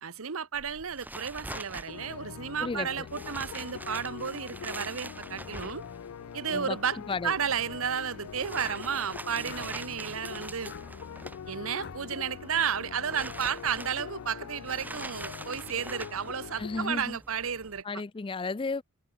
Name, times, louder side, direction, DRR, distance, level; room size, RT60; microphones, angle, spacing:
voice 1, 0.0-5.8 6.3-7.0 7.2-10.7 11.5-17.8, right 7 dB, 70° right, 0.9 m, -32 dB
sound 1, 0.5-17.8, right 2 dB, 10° right, 1.2 m, -45 dB
sound 2, 1.4-1.7 3.3-3.5 5.5-5.8 6.4-6.7 8.6-8.8 9.4-9.7 10.7-10.8 11.7-12.0, left 4 dB, 50° left, 1.3 m, -45 dB
sound 3, 1.9-16.9, left 7 dB, 85° left, 0.4 m, -43 dB
voice 2, 2.6-3.1 6.5-6.8 7.1-7.3 16.6-17.2 17.8-18.8, left 3 dB, 25° left, 0.4 m, -33 dB
head